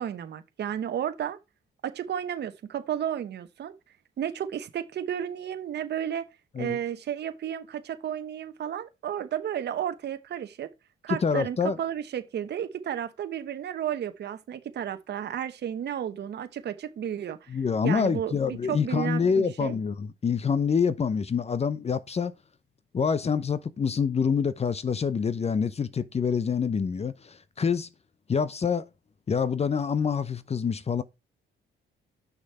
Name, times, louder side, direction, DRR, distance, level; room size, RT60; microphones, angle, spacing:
voice 1, 0.0-1.4 1.8-3.7 4.2-6.3 6.6-10.7 11.0-19.7, right 9 dB, 60° right, 1.0 m, -33 dB
voice 2, 11.1-11.8 17.5-22.3 22.9-27.9 28.3-28.8 29.3-31.0, left 6 dB, 30° left, 0.7 m, -26 dB
6.3 x 6.1 x 4.3 m
cardioid pair, 90°, 20 cm